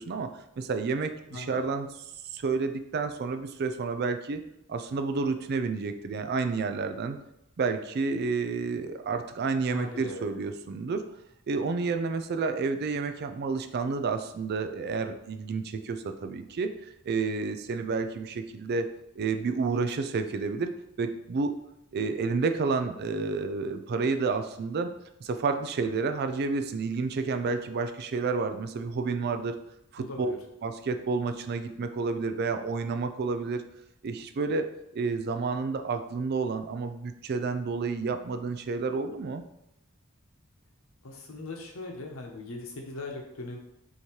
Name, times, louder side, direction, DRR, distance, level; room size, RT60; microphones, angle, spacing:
voice 1, 0.0-1.9 2.3-4.4 4.7-7.2 7.6-11.0 11.5-18.9 19.2-20.7 21.0-21.5 21.9-24.9 25.2-29.6 29.9-30.3 30.6-33.6 34.0-34.7 34.9-39.4, right 4 dB, 45° right, 8 dB, 0.4 m, -30 dB
voice 2, 9.6-10.2 30.0-30.4 41.0-43.6, left 2 dB, 65° left, 1 dB, 0.9 m, -40 dB
5.6 x 2.8 x 3.1 m, 0.84 s
head